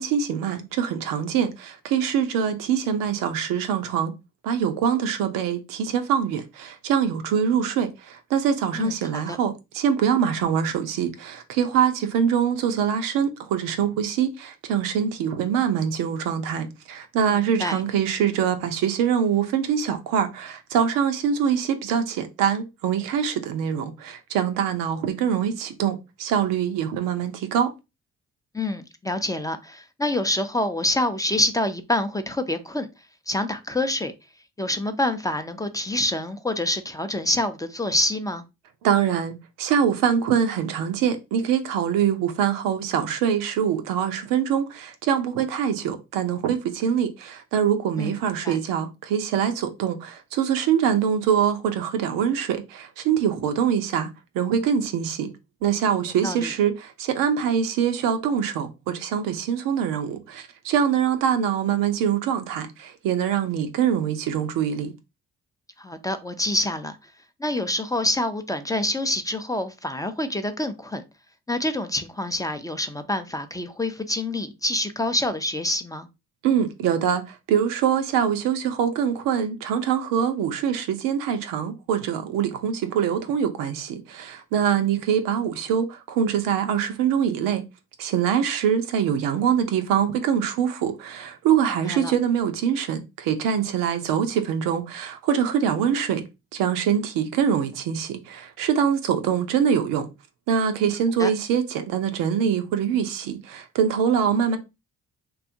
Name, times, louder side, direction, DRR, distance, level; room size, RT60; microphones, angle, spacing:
voice 1, 0.0-4.1 4.4-27.7 38.8-54.1 54.3-55.3 55.6-64.9 76.4-87.6 88.0-96.2 96.5-100.1 100.5-104.6, right 8 dB, 80° right, 0.6 m, -24 dB
voice 2, 8.7-9.4 17.6-17.8 28.5-32.9 33.3-34.1 34.6-38.4 48.0-48.2 48.4-48.6 56.2-56.5 65.8-67.0 67.4-71.0 71.5-76.1 91.8-92.1 101.2-101.3, left 1 dB, 10° left, 0.5 m, -26 dB
2.7 x 2.3 x 2.6 m
hypercardioid pair, 50°, 33 cm